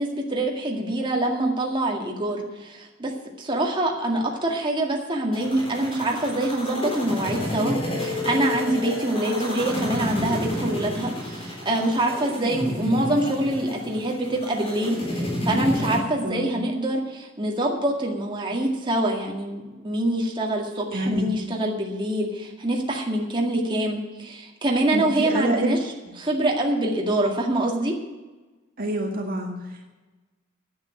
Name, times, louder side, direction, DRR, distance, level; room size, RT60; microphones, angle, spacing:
voice 1, 0.0-3.1 3.4-25.8 26.2-27.9, right 1 dB, 25° right, -1 dB, 2.0 m, -25 dB
sound 1, 5.3-16.0, left 1 dB, 30° left, 3.8 m, -30 dB
voice 2, 20.9-21.3 24.9-25.7 28.8-29.9, right 1 dB, 45° right, 1 dB, 1.8 m, -27 dB
10.5 x 8.9 x 9.1 m, 1.2 s
head